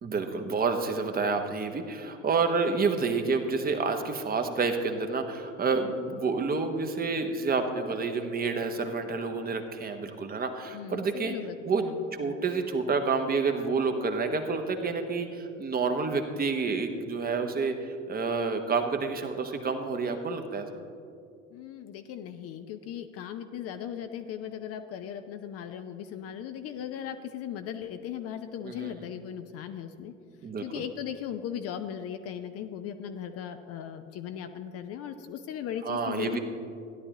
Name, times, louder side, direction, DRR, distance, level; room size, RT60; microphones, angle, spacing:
voice 1, 0.0-11.3 11.6-11.8 12.1-20.7 28.6-28.9 30.4-30.8 35.8-36.4, right 4 dB, 25° right, 6 dB, 1.0 m, -29 dB
voice 2, 10.7-12.3 21.5-30.1 30.6-36.4, left 9 dB, 40° left, 8 dB, 0.6 m, -38 dB
16.0 x 11.0 x 2.9 m, 2.4 s
figure-of-eight pair, 70°, 37 cm